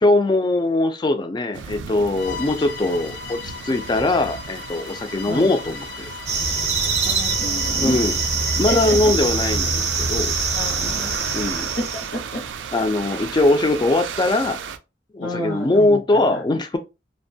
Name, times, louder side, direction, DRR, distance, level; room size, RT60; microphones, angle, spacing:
voice 1, 0.0-5.9 7.8-8.2 8.6-10.3 11.3-11.7 12.7-14.6 15.1-16.8, left 2 dB, 25° left, 0.3 m, -21 dB
sound 1, 1.5-14.8, right 7 dB, 85° right, 0.3 m, -35 dB
Bowed string instrument, 2.1-9.1, left 8 dB, 90° left, 0.4 m, -37 dB
sound 2, 6.3-12.1, right 4 dB, 40° right, 0.6 m, -23 dB
voice 2, 7.0-8.0 8.6-9.0 10.5-11.2 11.8-12.4 13.0-13.2 15.2-16.2, equal, 65° left, 0.7 m, -30 dB
2.5 x 2.1 x 2.6 m
head